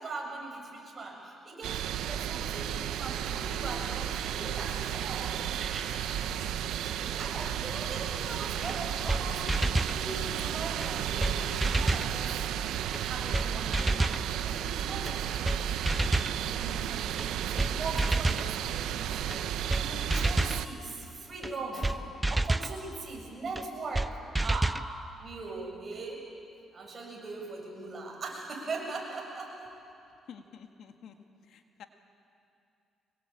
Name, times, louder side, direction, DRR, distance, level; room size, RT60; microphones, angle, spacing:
voice 1, 0.0-6.0 6.8-12.4 13.0-15.7 16.2-22.0 22.3-24.8 25.2-26.2 26.7-29.8, right 3 dB, 40° right, -1 dB, 7.5 m, -40 dB
sound 1, 1.6-20.7, right 10 dB, 85° right, 0.8 m, -33 dB
sound 2, 8.7-8.8 9.1-9.2 9.5-10.0 10.8-10.9 11.2-11.3 11.6-12.1 12.9-13.0 13.3-13.5 13.7-14.2 15.1-15.2 15.4-15.6 15.9-16.3 17.2-17.3 17.6-17.7 18.0-18.5 19.3-19.4 19.7-19.8 20.1-20.6 21.4-21.5 21.8-22.0 22.2-22.7 23.6-23.7 23.9-24.1 24.3-24.8, right 2 dB, 15° right, 0.6 m, -28 dB
voice 2, 30.3-31.1 31.5-31.8, left 7 dB, 70° left, 6 dB, 1.7 m, -49 dB
25.0 x 20.5 x 8.7 m, 2.6 s
cardioid pair, 90°, 0 cm